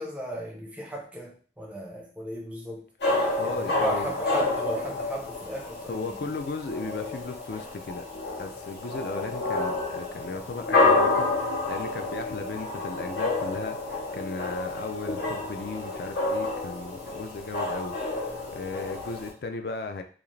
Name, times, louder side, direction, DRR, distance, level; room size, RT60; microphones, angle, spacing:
voice 1, 0.0-2.9 3.4-6.3, equal, 5° right, -1 dB, 0.5 m, -35 dB
sound 1, 3.0-19.3, left 2 dB, 70° left, 0.8 m, -29 dB
voice 2, 3.4-4.1 5.9-8.0 8.4-20.0, left 3 dB, 55° left, 7 dB, 0.4 m, -36 dB
2.5 x 2.4 x 3.0 m, 0.41 s
head